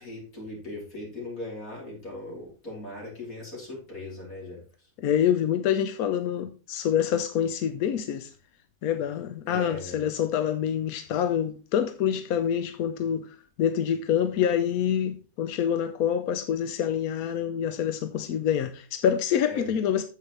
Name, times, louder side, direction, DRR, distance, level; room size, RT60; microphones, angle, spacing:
voice 1, 0.0-4.6 9.4-10.1 19.5-19.7, left 2 dB, 50° left, 4.5 m, -38 dB
voice 2, 5.0-8.3 8.8-20.0, left 9 dB, 65° left, 1.0 m, -26 dB
9.5 x 7.5 x 3.3 m
omnidirectional pair, 2.0 m